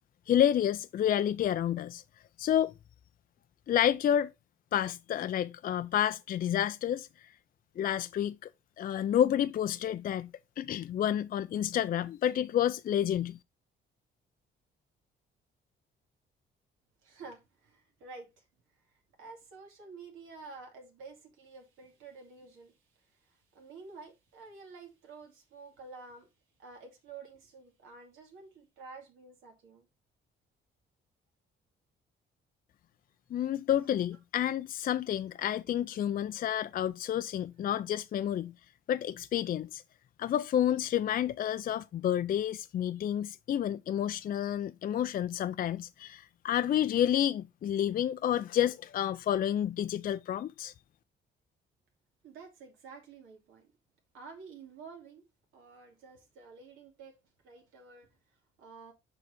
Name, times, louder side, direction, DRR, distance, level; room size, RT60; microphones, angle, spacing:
voice 1, 0.3-2.0 2.4-2.7 3.7-4.3 4.7-7.1 7.8-8.3 8.8-10.3 10.6-13.4 33.3-38.5 38.9-39.8 40.2-50.7, left 10 dB, 45° left, 0.4 m, -29 dB
voice 2, 17.0-18.4 19.2-26.3 26.6-29.9 33.9-34.0 52.2-53.7 54.1-55.2 55.5-57.2 57.4-58.2 58.6-58.9, right 4 dB, 90° right, 2.4 m, -50 dB
6.8 x 4.7 x 4.1 m
cardioid pair, 90°, 20 cm